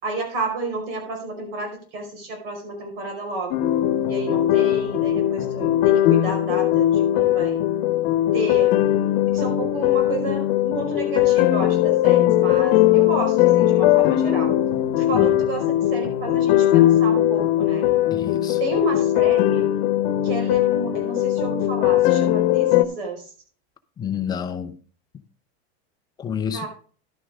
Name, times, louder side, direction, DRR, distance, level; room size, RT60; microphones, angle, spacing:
voice 1, 0.0-3.5 4.1-7.6 8.3-8.7 9.3-14.5 15.0-17.9 18.6-19.7 20.2-23.2 26.5-26.7, right 2 dB, 65° right, 5.0 m, -31 dB
sound 1, 3.5-22.9, left 13 dB, 55° left, 1.1 m, -19 dB
voice 2, 15.1-15.5 18.1-18.6 24.0-24.8 26.2-26.7, left 8 dB, 15° left, 0.6 m, -29 dB
11.5 x 9.6 x 3.6 m
supercardioid pair, 170°, 31 cm